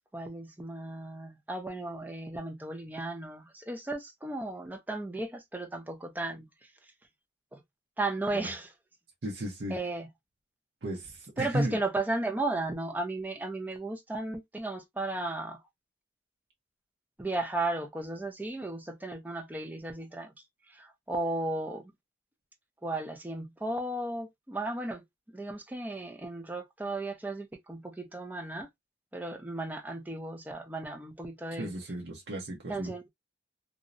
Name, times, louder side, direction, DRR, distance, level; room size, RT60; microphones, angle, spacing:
voice 1, 0.1-6.5 7.5-7.6 8.0-8.7 9.7-10.1 11.4-15.6 17.2-20.3 20.7-21.8 22.8-25.0 25.3-28.7 29.1-31.7 32.7-33.1, right 2 dB, 10° right, 0.4 m, -35 dB
voice 2, 9.2-9.8 10.8-11.8 31.5-32.9, right 1 dB, 70° right, 0.8 m, -34 dB
2.6 x 2.0 x 2.4 m
head